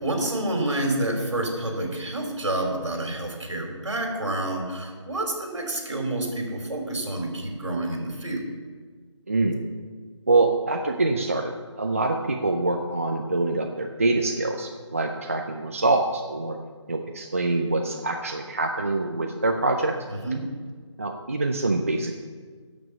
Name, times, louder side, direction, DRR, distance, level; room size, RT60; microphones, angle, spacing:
voice 1, 0.0-8.4 20.1-20.5, right 1 dB, 70° right, 1 dB, 3.4 m, -28 dB
voice 2, 9.3-9.6 10.3-16.6 16.9-19.9 21.0-22.1, right 2 dB, 30° right, 3 dB, 0.4 m, -25 dB
9.5 x 7.1 x 6.9 m, 1.5 s
figure-of-eight pair, 170°, 16 cm